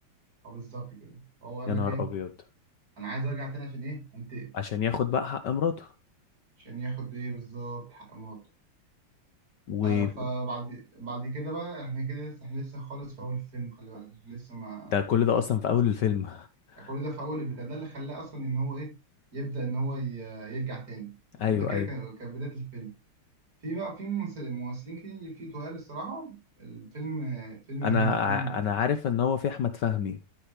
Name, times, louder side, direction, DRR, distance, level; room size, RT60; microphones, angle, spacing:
voice 1, 0.4-2.1 3.0-4.5 6.6-8.4 9.8-15.0 16.8-18.9 19.3-22.9 23.6-28.7, right 3 dB, 40° right, 4.1 m, -35 dB
voice 2, 1.7-2.3 4.5-5.9 9.7-10.1 14.9-16.5 16.8-16.9 21.4-21.9 27.8-30.2, left 8 dB, 65° left, 1.3 m, -27 dB
13.0 x 6.1 x 3.2 m
omnidirectional pair, 2.4 m